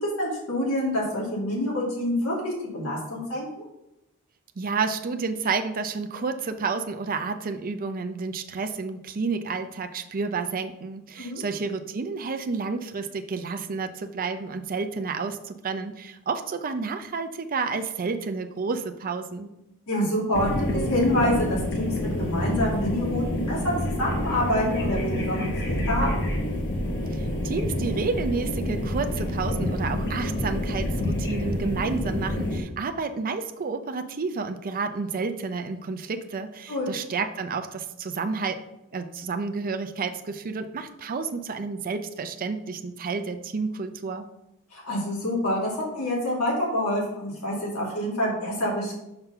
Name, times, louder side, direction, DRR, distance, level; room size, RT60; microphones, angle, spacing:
voice 1, 0.0-3.6 11.2-11.4 19.9-26.2 36.7-36.9 44.7-48.9, left 1 dB, 80° left, -4 dB, 2.5 m, -27 dB
voice 2, 4.6-19.5 27.1-38.6 38.9-44.3, right 4 dB, 40° right, 7 dB, 0.5 m, -30 dB
sound 1, 20.3-32.6, left 1 dB, 55° left, 1.0 m, -28 dB
5.8 x 3.8 x 5.5 m, 0.88 s
head